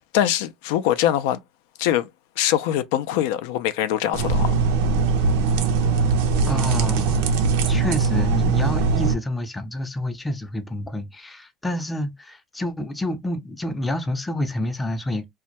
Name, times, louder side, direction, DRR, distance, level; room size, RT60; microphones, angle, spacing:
voice 1, 0.1-1.4 1.8-2.1 2.4-4.5, left 11 dB, 80° left, 0.3 m, -22 dB
sound 1, 4.1-9.1, right 4 dB, 85° right, 0.4 m, -21 dB
voice 2, 6.5-7.2 7.7-15.3, left 1 dB, 10° left, 0.4 m, -28 dB
2.2 x 2.0 x 2.7 m
supercardioid pair, 110°, 0 cm